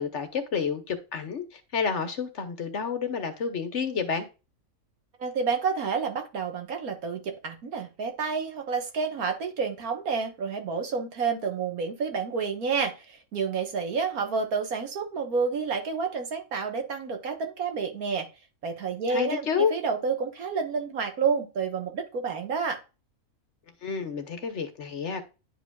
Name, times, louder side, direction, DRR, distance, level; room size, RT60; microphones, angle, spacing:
voice 1, 0.0-4.3 19.1-19.7 23.8-25.2, left 6 dB, 55° left, 1.1 m, -29 dB
voice 2, 5.2-18.3 18.6-22.8, right 5 dB, 70° right, 1.7 m, -29 dB
11.0 x 4.9 x 2.3 m
omnidirectional pair, 1.6 m